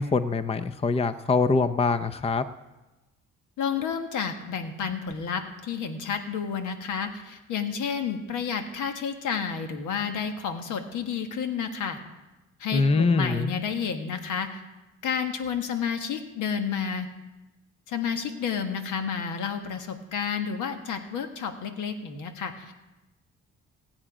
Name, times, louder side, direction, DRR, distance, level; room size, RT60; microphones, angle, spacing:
voice 1, 0.0-2.4 12.7-13.5, left 4 dB, 20° left, 12 dB, 0.6 m, -24 dB
voice 2, 3.6-12.0 12.6-14.6 15.0-17.1 17.9-22.7, left 6 dB, 80° left, 7 dB, 1.5 m, -30 dB
18.5 x 8.8 x 4.9 m, 1.1 s
cardioid pair, 90°, 30 cm